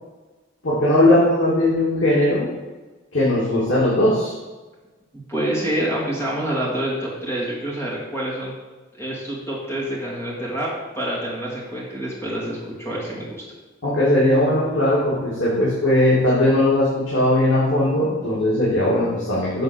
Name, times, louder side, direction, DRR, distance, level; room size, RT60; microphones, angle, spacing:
voice 1, 0.6-2.4 3.1-4.3 13.8-19.6, left 1 dB, 90° left, -8 dB, 2.5 m, -19 dB
voice 2, 5.3-8.5 8.9-10.7 11.0-13.4, right 1 dB, 15° left, -5 dB, 2.6 m, -27 dB
7.8 x 4.3 x 6.7 m, 1.2 s
head